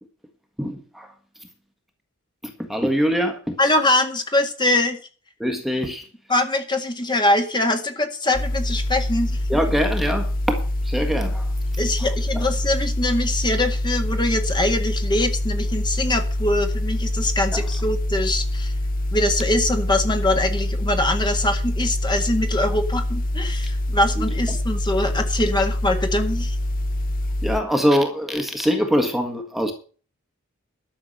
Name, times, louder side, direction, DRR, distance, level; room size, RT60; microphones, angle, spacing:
voice 1, 0.6-1.1 2.4-3.6 5.4-6.0 9.5-11.5 12.0-12.5 17.5-17.7 24.1-24.6 27.4-29.7, equal, ahead, 1.7 m, -24 dB
voice 2, 3.6-5.0 6.3-9.4 11.8-18.7 19.1-26.6, left 1 dB, 20° left, 1.8 m, -23 dB
sound 1, 8.3-27.6, left 1 dB, 40° left, 0.8 m, -25 dB
12.5 x 6.9 x 7.9 m
head